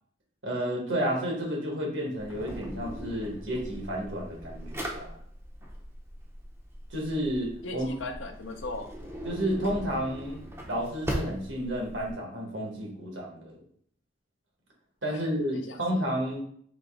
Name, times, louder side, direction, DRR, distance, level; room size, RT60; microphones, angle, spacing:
voice 1, 0.4-5.1 6.9-7.9 9.2-10.4 10.7-13.6 15.0-16.4, equal, 80° right, -1 dB, 1.4 m, -31 dB
Drawer open or close, 2.2-12.1, equal, 15° right, 0.5 m, -39 dB
voice 2, 7.6-8.9 15.1-16.1, left 2 dB, 85° left, 4 dB, 0.7 m, -39 dB
3.9 x 3.0 x 3.6 m, 0.62 s
head